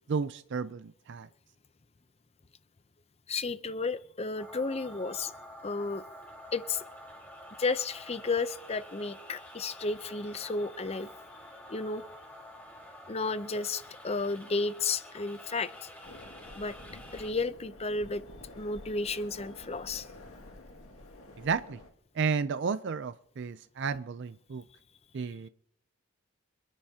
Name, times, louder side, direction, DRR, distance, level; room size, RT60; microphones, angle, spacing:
voice 1, 0.1-1.3 21.4-21.8 22.2-24.6 25.1-25.5, right 5 dB, 55° right, 13 dB, 0.4 m, -32 dB
voice 2, 3.3-5.3 5.6-6.0 6.5-6.8 7.6-11.1 11.7-12.0 13.1-15.9 16.5-16.8 17.1-18.2 18.6-20.1, left 3 dB, 30° left, 14 dB, 0.6 m, -32 dB
sound 1, 4.4-17.3, equal, 10° left, 4.5 m, -49 dB
sound 2, 16.0-21.9, left 2 dB, 85° left, 2.1 m, -49 dB
26.5 x 10.5 x 2.8 m, 0.70 s
head